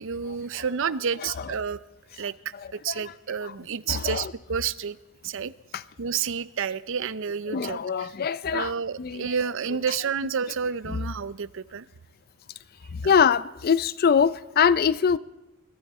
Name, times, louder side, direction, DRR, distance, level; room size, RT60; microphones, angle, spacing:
voice 1, 0.0-1.8 2.2-2.3 2.7-5.0 5.2-5.5 6.0-8.1 8.5-11.9 13.0-13.1, right 6 dB, 65° right, 0.6 m, -30 dB
voice 2, 1.2-1.5 2.5-3.1 3.4-3.5 3.9-4.3 5.7-5.8 7.5-9.3 10.9-11.0 12.9-15.2, left 7 dB, 45° left, 0.4 m, -24 dB
21.0 x 13.5 x 4.3 m
head